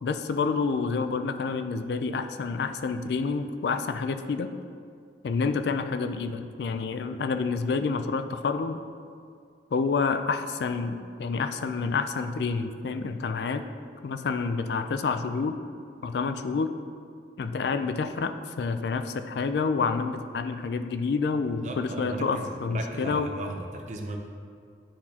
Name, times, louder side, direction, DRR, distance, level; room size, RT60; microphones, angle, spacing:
voice 1, 0.0-4.5 5.2-8.8 9.7-13.6 14.0-15.5 16.0-16.7 17.4-23.3, left 4 dB, 70° left, 9 dB, 0.3 m, -28 dB
voice 2, 21.6-24.2, right 2 dB, 40° right, 3 dB, 0.6 m, -36 dB
9.9 x 4.3 x 2.8 m, 2.3 s
head